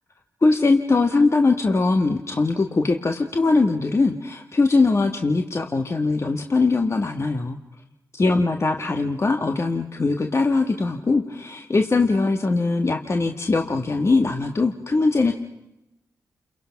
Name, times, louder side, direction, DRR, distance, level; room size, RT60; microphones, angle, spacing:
voice 1, 0.4-7.6 8.1-15.3, left 3 dB, 40° left, 4 dB, 1.6 m, -21 dB
29.5 x 22.0 x 5.9 m, 0.90 s
supercardioid pair, 45°, 7 cm